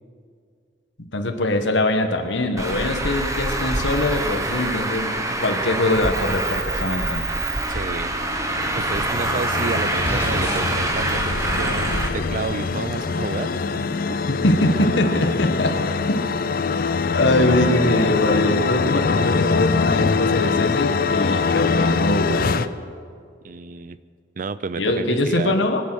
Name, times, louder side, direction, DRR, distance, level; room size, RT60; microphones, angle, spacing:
voice 1, 1.1-7.3 14.3-15.8 17.1-22.7 24.8-25.8, left 1 dB, 80° left, 5 dB, 1.3 m, -22 dB
Traffic noise roadway noise, 2.6-12.1, right 2 dB, 15° right, 1.1 m, -25 dB
voice 2, 7.7-8.1 8.8-13.5 13.8-13.9 23.4-24.0 24.4-25.5, right 4 dB, 45° right, 15 dB, 0.4 m, -30 dB
sound 1, 8.0-22.7, left 4 dB, 50° left, 0.5 m, -23 dB
sound 2, 10.1-18.8, left 1 dB, 15° left, 1.2 m, -39 dB
23.5 x 8.4 x 6.3 m, 2.2 s
head